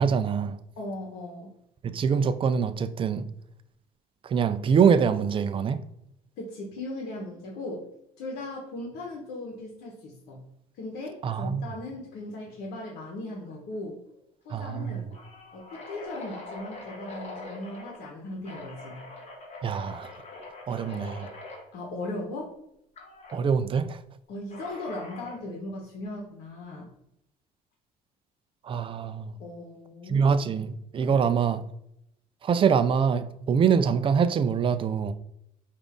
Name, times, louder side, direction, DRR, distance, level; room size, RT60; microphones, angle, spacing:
voice 1, 0.0-0.6 1.8-3.3 4.2-5.8 11.2-11.7 14.5-15.1 19.6-20.1 20.7-21.3 23.3-24.0 28.6-29.4 30.1-31.6 32.4-35.1, right 6 dB, 30° right, 0.3 m, -24 dB
voice 2, 0.8-1.5 6.4-7.9 8.2-10.4 10.8-14.0 14.4-15.0 15.5-19.0 21.7-22.5 24.3-26.9 29.4-30.3 31.1-31.2, left 2 dB, 80° left, 1.0 m, -38 dB
sound 1, 13.5-13.8 14.1-14.2 14.7-18.0 18.4-21.6 23.0-23.4 24.5-25.4, left 2 dB, 40° left, 1.3 m, -43 dB
5.1 x 2.5 x 3.5 m
cardioid pair, 110°, 17 cm